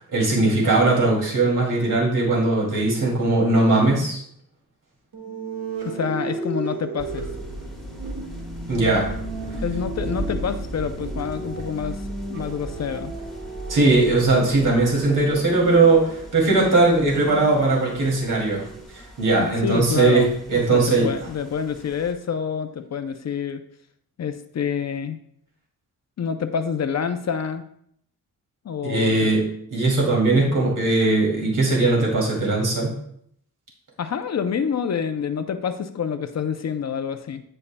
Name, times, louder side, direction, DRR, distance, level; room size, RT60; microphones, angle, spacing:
voice 1, 0.1-4.2 8.7-9.1 13.7-18.7 19.2-20.2 20.5-21.1 28.8-29.4 29.7-32.9, right 2 dB, 60° right, -3 dB, 2.6 m, -19 dB
sound 1, 5.1-18.8, right 4 dB, 85° right, 1.6 m, -36 dB
voice 2, 5.8-7.2 9.6-12.0 12.3-13.1 19.4-23.6 24.2-25.2 26.2-27.6 28.6-29.3 34.0-37.4, left 7 dB, 50° left, 9 dB, 0.5 m, -27 dB
sound 2, 7.0-22.1, right 1 dB, ahead, 1.4 m, -37 dB
15.5 x 5.5 x 2.2 m, 0.68 s
wide cardioid pair, 170°, 34 cm